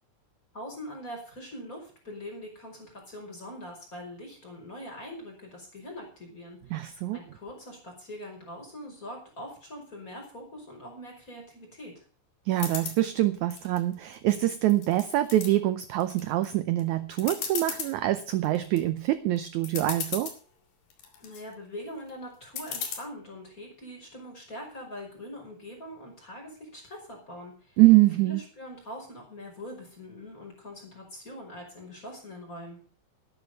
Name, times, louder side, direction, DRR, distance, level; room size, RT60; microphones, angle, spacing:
voice 1, 0.5-6.8 7.1-12.0 21.2-27.8 28.2-32.8, left 1 dB, 25° left, 1 dB, 5.4 m, -43 dB
voice 2, 6.7-7.2 12.5-20.3 27.8-28.4, right 16 dB, 75° right, 12 dB, 1.8 m, -24 dB
sound 1, 12.6-13.0 13.5-14.3 14.7-15.5 16.0-16.5 16.8-16.9 17.2-17.9 18.4-18.8 19.4-19.5 19.6-20.4 20.9-21.4 22.6-23.0, left 7 dB, 80° left, 4.0 m, -35 dB
12.5 x 10.5 x 5.5 m, 0.40 s
omnidirectional pair, 4.0 m